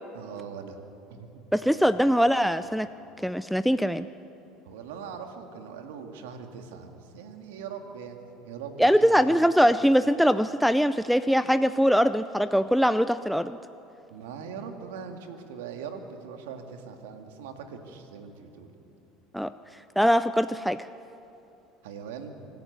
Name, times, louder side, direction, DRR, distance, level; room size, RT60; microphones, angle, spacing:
voice 1, 0.1-0.8 1.1-1.4 4.6-9.3 14.1-18.7 21.8-22.4, right 6 dB, 80° right, 5 dB, 2.1 m, -41 dB
voice 2, 1.5-2.9 3.2-4.1 8.8-13.6 19.3-19.5 20.0-20.8, equal, ahead, 14 dB, 0.5 m, -22 dB
25.0 x 12.0 x 9.3 m, 3.0 s
hypercardioid pair, 80°, 0 cm